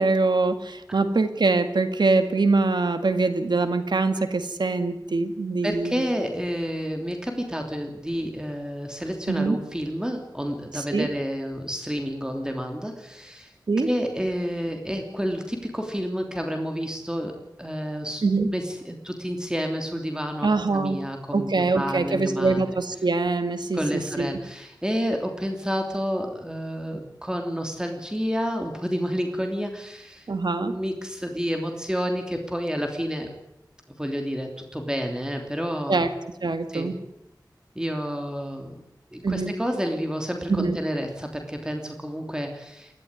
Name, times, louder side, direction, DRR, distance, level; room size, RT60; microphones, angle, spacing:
voice 1, 0.0-6.0 9.3-9.6 10.7-11.1 13.7-13.9 18.2-18.5 20.4-21.0 21.3-24.4 30.3-30.7 35.9-36.1 36.4-37.0 39.2-39.5 40.5-40.8, right 3 dB, 90° right, 9 dB, 2.0 m, -23 dB
voice 2, 5.6-13.5 13.8-17.3 17.6-18.2 18.5-22.8 23.7-30.3 30.6-33.3 33.9-36.0 36.7-36.9 37.7-38.8 39.1-43.0, equal, 10° right, 3 dB, 3.1 m, -30 dB
20.5 x 13.5 x 9.7 m, 0.89 s
wide cardioid pair, 55°, 7 cm